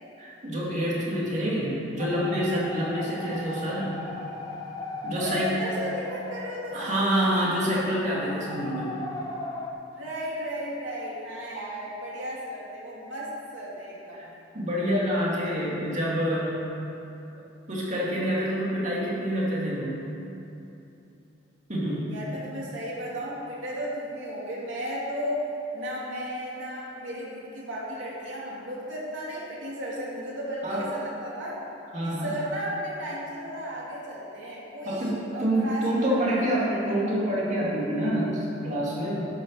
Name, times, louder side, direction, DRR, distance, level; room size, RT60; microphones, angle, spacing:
voice 1, 0.2-4.0 5.0-5.6 6.7-8.9 14.1-14.3 14.5-16.7 17.7-20.0 21.7-22.1 30.6-30.9 31.9-32.3 34.8-39.3, equal, 40° right, -5 dB, 2.5 m, -27 dB
sound 1, 2.0-9.7, left 2 dB, 20° left, 0.9 m, -37 dB
voice 2, 5.2-7.0 10.0-14.3 22.1-31.5 32.0-37.0, equal, 80° right, -5 dB, 2.8 m, -34 dB
12.0 x 6.3 x 6.6 m, 2.8 s
head